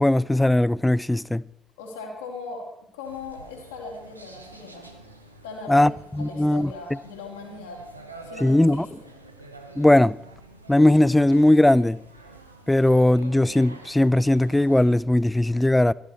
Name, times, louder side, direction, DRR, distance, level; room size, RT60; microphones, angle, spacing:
voice 1, 0.0-1.4 5.7-6.7 8.4-8.9 9.8-10.2 10.7-12.0 12.7-15.9, left 1 dB, 10° left, 0.4 m, -19 dB
voice 2, 1.8-2.7 2.9-4.9 5.4-7.8 8.2-9.1, left 4 dB, 75° left, 3.3 m, -39 dB
sound 1, 3.0-15.0, right 2 dB, 90° right, 0.9 m, -47 dB
16.5 x 14.0 x 4.3 m
figure-of-eight pair, 45°, 0 cm